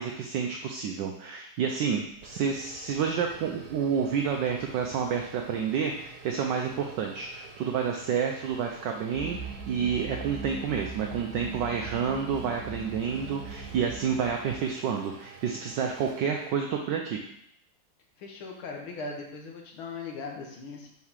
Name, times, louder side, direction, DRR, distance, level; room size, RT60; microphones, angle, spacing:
voice 1, 0.0-17.2, right 7 dB, 70° right, 2 dB, 1.2 m, -29 dB
sound 1, 2.1-16.5, right 5 dB, 90° right, 1.8 m, -49 dB
sound 2, 9.1-14.6, right 4 dB, 45° left, 2.9 m, -40 dB
voice 2, 18.2-20.9, left 4 dB, 75° left, 1 dB, 1.9 m, -39 dB
4.8 x 4.7 x 5.7 m, 0.72 s
omnidirectional pair, 2.3 m